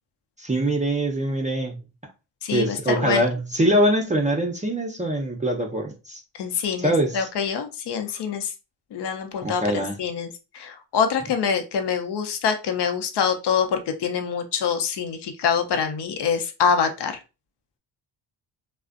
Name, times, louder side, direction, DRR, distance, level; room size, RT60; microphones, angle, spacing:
voice 1, 0.4-1.8 2.5-6.2 6.8-7.3 9.4-10.0, right 1 dB, 15° right, 0.5 m, -23 dB
voice 2, 2.4-3.2 6.4-8.5 8.9-17.2, left 6 dB, 60° left, 0.7 m, -25 dB
2.4 x 2.1 x 2.4 m
supercardioid pair, 55°, 47 cm